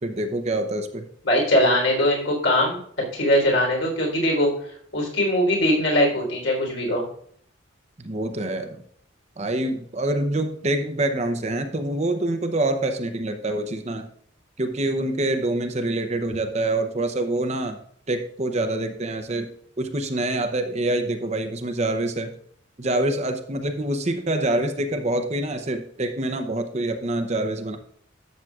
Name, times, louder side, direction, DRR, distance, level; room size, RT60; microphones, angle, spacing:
voice 1, 0.0-1.1 8.0-8.8 9.4-14.1 14.6-17.8 18.1-19.5 19.8-22.4 22.8-27.8, right 1 dB, 35° right, 6 dB, 0.7 m, -26 dB
voice 2, 1.2-2.8 3.1-4.5 4.9-7.1, equal, 65° left, -1 dB, 3.7 m, -21 dB
12.5 x 7.4 x 2.4 m, 0.62 s
head